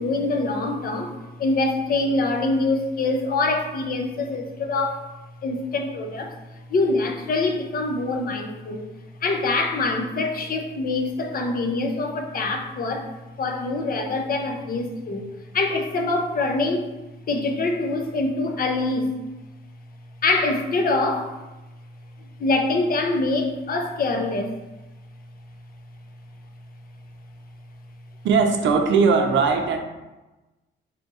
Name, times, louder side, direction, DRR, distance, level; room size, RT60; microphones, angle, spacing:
voice 1, 0.0-5.1 5.4-6.4 6.7-8.9 9.2-16.9 17.3-19.1 20.2-21.4 22.4-24.5, left 2 dB, 45° left, 4 dB, 0.5 m, -24 dB
voice 2, 28.2-29.8, right 5 dB, 70° right, 4 dB, 0.5 m, -19 dB
2.8 x 2.4 x 3.9 m, 1.1 s
cardioid pair, 90°, 20 cm